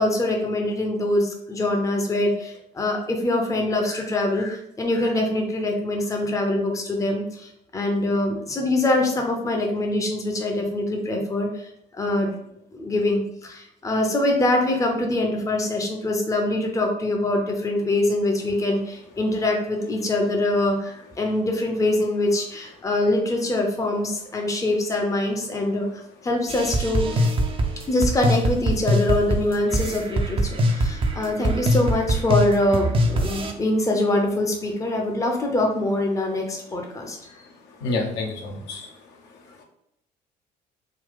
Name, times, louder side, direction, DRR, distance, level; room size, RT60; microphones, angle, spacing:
voice 1, 0.0-12.3 12.7-27.3 27.9-37.3, left 1 dB, 15° left, 2 dB, 0.7 m, -24 dB
sound 1, 26.5-33.5, equal, 25° right, 0.6 m, -23 dB
voice 2, 37.8-38.9 39.6-39.7, left 3 dB, 55° left, 0 dB, 0.8 m, -28 dB
3.8 x 2.3 x 3.8 m, 0.77 s
figure-of-eight pair, 55°, 21 cm